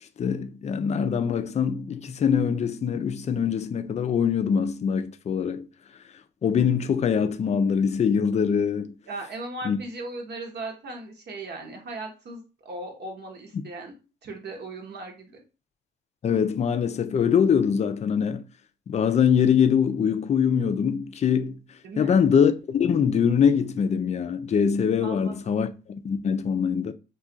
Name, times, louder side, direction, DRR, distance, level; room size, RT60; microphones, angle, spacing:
voice 1, 0.2-5.7 6.4-8.9 9.6-9.8 16.2-18.4 18.9-21.6 22.0-26.9, left 7 dB, 35° left, 0.4 m, -23 dB
voice 2, 9.1-13.9 14.2-15.4 21.8-22.2 25.0-25.6, right 2 dB, 60° right, 0.9 m, -37 dB
2.4 x 2.3 x 3.8 m
cardioid pair, 90°, 20 cm